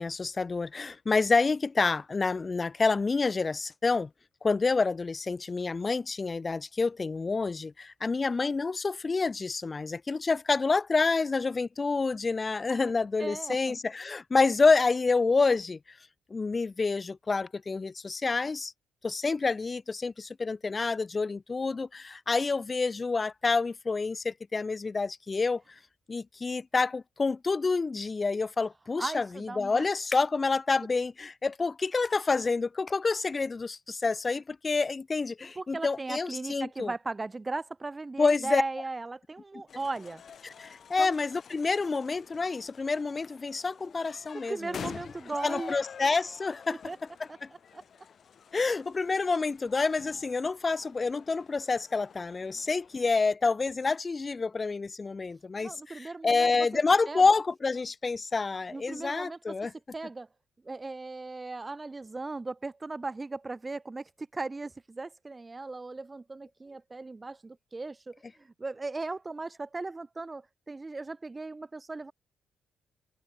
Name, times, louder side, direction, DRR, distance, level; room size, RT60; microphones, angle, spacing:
voice 1, 0.0-4.1 4.4-16.0 16.3-18.7 19.0-25.6 26.1-36.9 38.2-38.6 40.4-44.8 45.4-46.8 47.4-47.5 48.5-59.7, left 4 dB, 30° left, 1.3 m, -28 dB
voice 2, 13.2-13.8 29.0-29.9 35.6-40.2 41.0-41.1 44.5-45.8 46.9-47.0 47.3-47.4 47.7-47.8 55.6-56.7 57.1-57.2 58.7-59.4 59.9-60.3 60.7-72.1, right 3 dB, 20° right, 0.4 m, -37 dB
sound 1, 39.7-53.1, left 7 dB, 50° left, 3.0 m, -48 dB
open air
cardioid pair, 90°, 0 cm